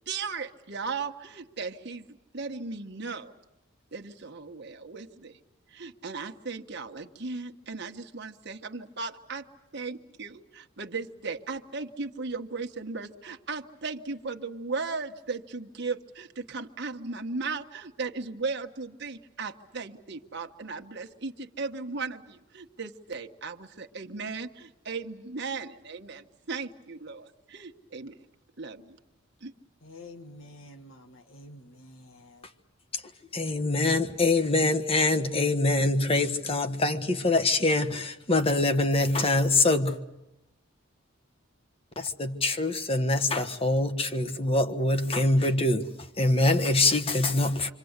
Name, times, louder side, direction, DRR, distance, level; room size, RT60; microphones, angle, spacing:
voice 1, 0.1-2.0 2.3-3.3 3.9-5.4 5.7-9.5 9.7-28.2 28.6-29.0 29.4-29.5, right 4 dB, 55° right, 1.4 m, -36 dB
voice 2, 29.8-32.5, left 2 dB, 75° left, 1.6 m, -48 dB
voice 3, 33.3-40.0 42.0-45.9 46.2-47.7, left 2 dB, 25° left, 1.3 m, -24 dB
27.5 x 25.0 x 8.2 m
head